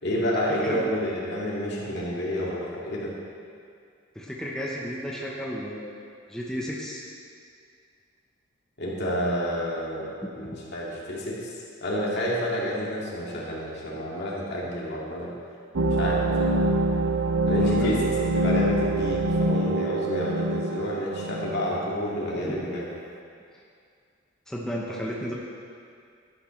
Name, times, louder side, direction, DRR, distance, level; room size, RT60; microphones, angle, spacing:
voice 1, 0.0-3.1 8.8-10.1 10.3-11.5 11.8-15.3 16.0-16.6 17.5-18.1 18.4-22.9, equal, 60° left, -5 dB, 2.3 m, -29 dB
voice 2, 4.1-6.0 6.3-7.0 10.2-10.6 12.1-12.2 17.5-18.0 22.4-22.6 24.5-25.3, equal, 5° left, -4 dB, 1.0 m, -33 dB
sound 1, 15.8-22.6, right 1 dB, 90° right, 0.6 m, -25 dB
12.0 x 11.5 x 3.3 m, 2.3 s
head